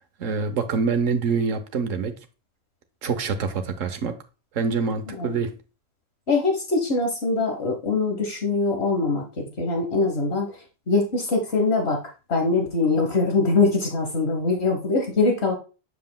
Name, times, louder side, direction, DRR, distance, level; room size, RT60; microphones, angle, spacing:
voice 1, 0.2-2.1 3.0-4.1 4.5-5.5, right 5 dB, 90° right, 1.2 m, -25 dB
voice 2, 5.1-5.4 6.3-15.5, left 3 dB, 60° left, 1.4 m, -23 dB
7.5 x 6.8 x 2.2 m
omnidirectional pair, 1.3 m